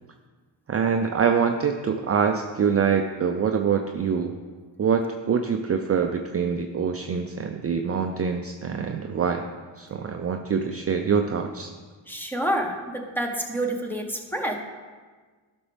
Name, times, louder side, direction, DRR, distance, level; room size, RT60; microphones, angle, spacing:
voice 1, 0.7-4.3 4.8-9.5 9.8-11.7, right 6 dB, 30° right, 5 dB, 0.5 m, -25 dB
voice 2, 12.1-14.6, right 1 dB, 5° left, 2 dB, 1.2 m, -28 dB
11.5 x 6.1 x 3.4 m, 1.4 s
cardioid pair, 85°, 47 cm